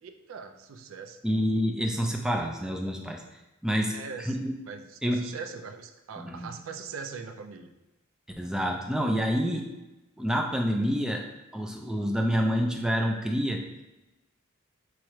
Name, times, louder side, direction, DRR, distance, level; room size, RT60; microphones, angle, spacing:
voice 1, 0.0-1.2 3.9-4.4 4.6-7.7, right 5 dB, 75° right, 7 dB, 0.4 m, -41 dB
voice 2, 1.2-3.2 3.6-3.9 4.2-4.5 5.0-5.2 6.2-6.6 8.4-9.7 10.2-11.2 11.5-13.6, equal, 5° right, 2 dB, 0.3 m, -27 dB
4.7 x 3.1 x 3.0 m, 1.0 s
head